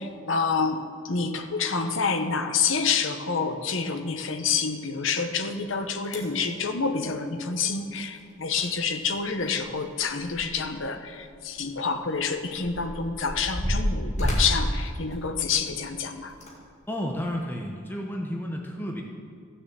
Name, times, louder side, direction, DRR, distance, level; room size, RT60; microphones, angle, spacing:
voice 1, 0.0-16.3, left 5 dB, 70° left, 8 dB, 1.0 m, -28 dB
sound 1, 5.6-5.7 6.0-6.5 8.2-8.3 8.5-8.6 9.0-10.8 11.1-11.2 12.0-15.7 16.3-16.5 17.1-17.2, equal, 35° left, 2.2 m, -30 dB
voice 2, 16.9-19.0, equal, 10° left, 0 dB, 0.8 m, -31 dB
14.5 x 6.7 x 7.6 m, 2.3 s
head